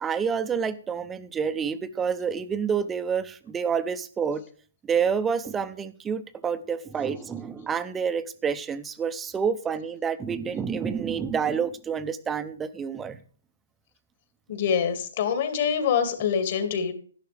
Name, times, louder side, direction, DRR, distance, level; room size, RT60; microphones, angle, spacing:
voice 1, 0.0-4.4 4.9-13.2, right 6 dB, 10° right, 12 dB, 0.7 m, -28 dB
voice 2, 14.5-16.9, left 7 dB, 45° left, 8 dB, 2.2 m, -25 dB
11.5 x 11.5 x 3.4 m, 0.43 s
hypercardioid pair, 155°, 0 cm